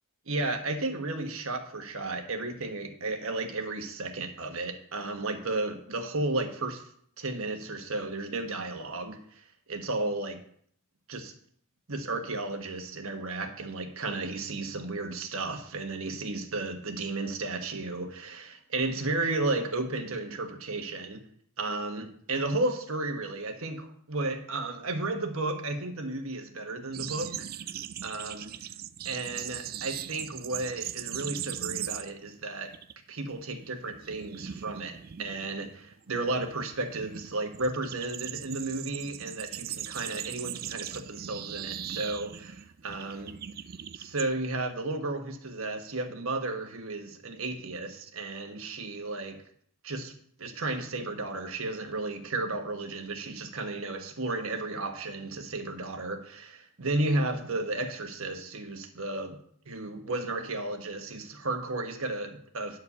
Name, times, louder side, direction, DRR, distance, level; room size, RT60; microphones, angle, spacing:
voice 1, 0.3-6.8 7.2-9.2 9.7-10.4 11.1-11.3 11.9-21.3 21.6-27.5 28.0-28.5 29.0-32.7 33.1-43.4 43.9-49.4 49.8-50.1 50.4-59.4 59.7-62.8, right 2 dB, 65° right, 5 dB, 1.3 m, -33 dB
sound 1, 26.9-32.3 32.6-32.9 33.3-44.3, right 10 dB, 40° right, 0.3 m, -39 dB
10.5 x 4.9 x 6.8 m, 0.64 s
head